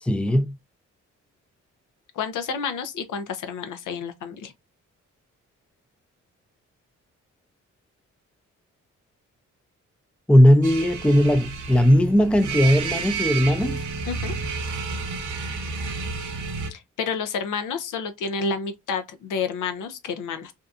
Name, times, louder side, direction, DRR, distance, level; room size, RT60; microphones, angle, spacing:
voice 1, 0.0-0.6 10.3-13.8, equal, 5° left, 0.5 m, -18 dB
voice 2, 2.2-4.5 14.1-14.3 16.7-20.5, left 5 dB, 70° left, 0.6 m, -30 dB
sound 1, 10.6-16.7, right 4 dB, 65° right, 0.7 m, -31 dB
2.7 x 2.3 x 2.4 m
supercardioid pair, 45°, 32 cm